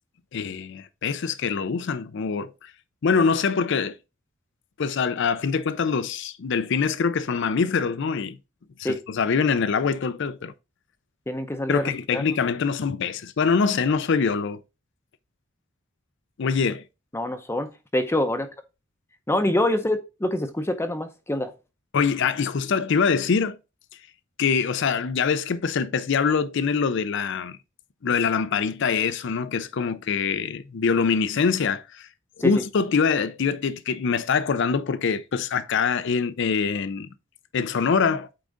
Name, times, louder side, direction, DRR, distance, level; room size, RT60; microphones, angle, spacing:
voice 1, 0.3-2.7 3.0-4.0 4.8-8.4 8.8-10.5 11.7-14.6 16.4-16.8 21.9-23.6 24.4-27.6 28.0-32.1 32.4-37.1 37.5-38.3, left 5 dB, 65° left, 0.5 m, -24 dB
voice 2, 11.3-12.2 17.1-18.5 19.3-21.5 32.4-32.6, left 1 dB, 15° left, 0.6 m, -26 dB
8.6 x 3.7 x 3.7 m
head